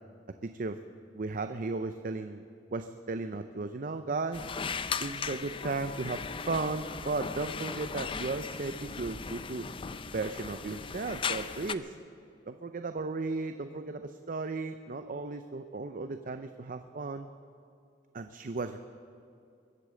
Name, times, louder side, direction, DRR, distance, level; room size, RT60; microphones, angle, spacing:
voice 1, 0.4-0.8 1.1-2.4 2.7-4.5 5.0-9.7 10.1-12.0 12.5-17.3 18.1-18.8, right 3 dB, 50° right, 8 dB, 0.6 m, -35 dB
sound 1, 4.3-11.8, left 5 dB, 30° left, 0.4 m, -37 dB
22.0 x 8.2 x 7.6 m, 2.5 s
head